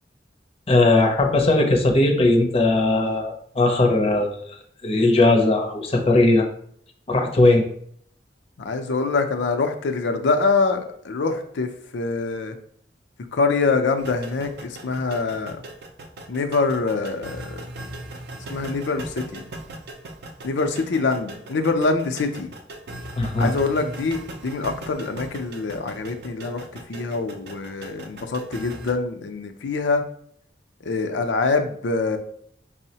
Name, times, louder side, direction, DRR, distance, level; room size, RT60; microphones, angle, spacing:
voice 1, 0.7-4.4 4.8-6.5 7.1-7.7 23.2-23.5, left 2 dB, 35° left, 3 dB, 0.5 m, -18 dB
voice 2, 8.6-12.6 13.3-15.6 16.3-17.6 18.5-19.4 20.4-22.5 23.4-30.0 30.8-32.2, left 4 dB, 90° left, 6 dB, 0.5 m, -24 dB
sound 1, 14.0-28.9, right 1 dB, 60° right, 0.4 m, -39 dB
5.4 x 2.0 x 2.8 m, 0.65 s
head